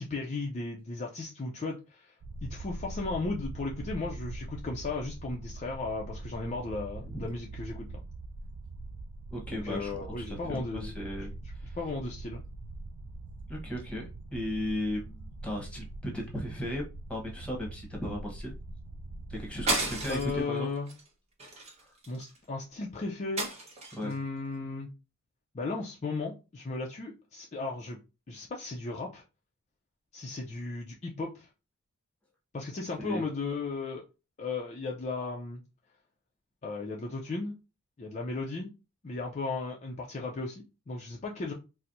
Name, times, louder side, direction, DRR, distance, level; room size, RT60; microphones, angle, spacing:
voice 1, 0.0-2.1 2.4-8.0 9.5-11.0 11.4-12.4 20.1-20.9 22.1-23.5 24.0-24.9 25.5-28.0 28.3-29.2 30.1-31.5 32.5-34.0 34.4-35.6 36.6-37.5 38.0-38.7 39.0-41.5, left 3 dB, 30° left, -1 dB, 0.4 m, -35 dB
sound 1, 2.2-20.4, right 2 dB, 80° right, 0.4 m, -43 dB
voice 2, 9.3-11.3 11.6-11.8 13.5-14.0 14.3-16.8 17.1-18.6 19.3-20.7 21.8-21.9 23.9-24.1 33.0-33.2, left 1 dB, 5° left, -1 dB, 1.0 m, -36 dB
sound 2, 19.7-20.4 20.9-21.1 21.4-22.4 23.4-24.1, right 2 dB, 30° right, 0.9 m, -32 dB
4.2 x 2.0 x 2.5 m, 0.29 s
head